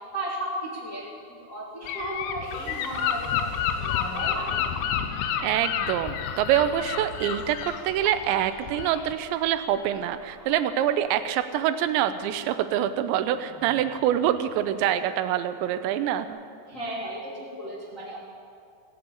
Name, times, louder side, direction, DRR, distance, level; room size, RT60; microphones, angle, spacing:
voice 1, 0.1-1.0 1.3-3.3 3.8-4.5 16.7-18.2, right 1 dB, 35° left, -6 dB, 1.3 m, -34 dB
Gull seagull / Wind, 1.9-9.1, left 8 dB, 85° left, 2.9 m, -30 dB
sound 1, 2.4-15.4, right 2 dB, 5° right, 3.3 m, -49 dB
voice 2, 5.4-16.4, right 11 dB, 85° right, 11 dB, 2.8 m, -25 dB
16.5 x 8.7 x 8.6 m, 2.3 s
omnidirectional pair, 5.2 m